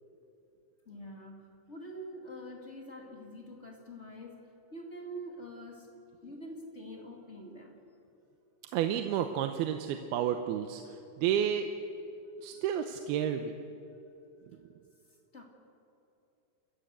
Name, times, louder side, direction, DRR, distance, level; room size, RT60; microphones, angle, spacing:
voice 1, 0.8-5.9 6.2-7.8 12.5-12.6 15.3-15.4, equal, 30° left, 1 dB, 1.3 m, -45 dB
voice 2, 8.7-11.7 12.4-13.5, right 9 dB, 80° right, 7 dB, 2.7 m, -31 dB
28.5 x 15.0 x 8.0 m, 2.9 s
omnidirectional pair, 4.6 m